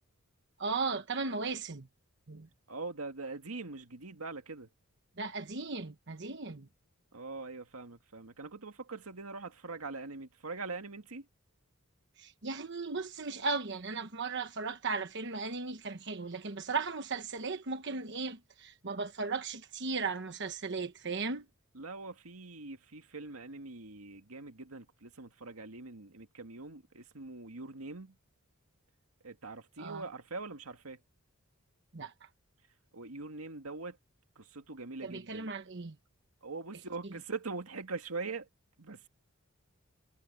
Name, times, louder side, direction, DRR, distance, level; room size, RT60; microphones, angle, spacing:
voice 1, 0.6-1.9 2.3-2.5 5.2-6.7 12.2-21.5 29.8-30.0 31.9-32.3 35.0-36.0 37.0-37.2, right 4 dB, 55° right, 1.2 m, -36 dB
voice 2, 2.7-4.7 7.1-11.3 21.7-28.2 29.2-31.0 32.9-34.0 34.4-35.5 36.4-38.5 38.8-39.1, right 3 dB, 90° right, 2.1 m, -43 dB
head